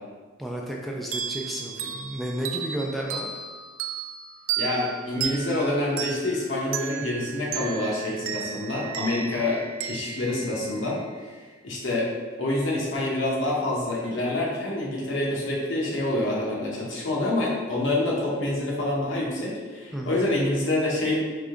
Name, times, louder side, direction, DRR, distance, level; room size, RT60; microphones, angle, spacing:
voice 1, 0.4-3.3 19.9-20.2, right 1 dB, ahead, -1 dB, 0.3 m, -32 dB
sound 1, 1.1-11.4, right 8 dB, 85° right, 0.4 m, -34 dB
voice 2, 4.6-11.0 11.6-12.1 12.4-21.2, left 1 dB, 70° left, -4 dB, 1.1 m, -27 dB
3.7 x 3.3 x 3.7 m, 1.4 s
head